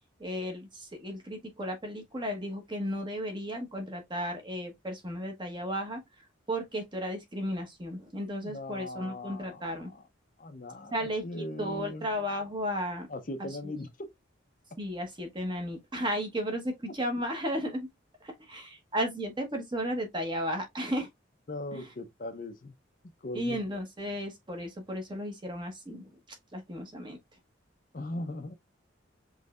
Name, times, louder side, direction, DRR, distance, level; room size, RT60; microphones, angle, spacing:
voice 1, 0.2-6.0 6.5-9.9 10.9-11.2 11.6-13.1 13.4-13.5 14.8-17.9 18.2-21.1 21.7-21.8 23.3-26.1 26.5-27.2, equal, 25° right, 1.1 m, -34 dB
voice 2, 8.4-10.0 10.4-12.1 13.1-14.1 21.5-22.7 23.2-23.6 27.9-28.5, left 1 dB, 45° left, 0.6 m, -39 dB
5.3 x 3.2 x 2.4 m
head